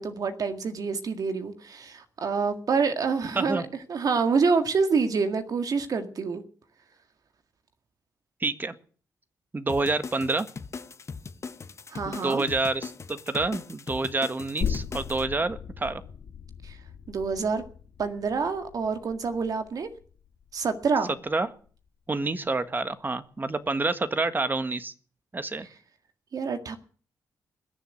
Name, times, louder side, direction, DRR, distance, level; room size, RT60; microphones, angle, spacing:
voice 1, 0.0-3.6 3.9-6.4 11.9-12.5 16.6-16.8 17.1-17.6 18.0-19.9 20.5-21.1 26.3-26.8, right 5 dB, 60° right, 8 dB, 1.9 m, -27 dB
voice 2, 8.4-8.7 9.5-10.5 12.0-16.0 21.3-21.5 22.1-24.9 25.3-25.7, right 3 dB, 30° right, 11 dB, 1.6 m, -28 dB
sound 1, 9.7-15.2, left 5 dB, 45° left, 1.3 m, -40 dB
sound 2, 14.6-21.9 22.2-22.3, left 8 dB, 75° left, 1.6 m, -38 dB
20.5 x 7.4 x 9.3 m, 0.43 s
cardioid pair, 75°, 7 cm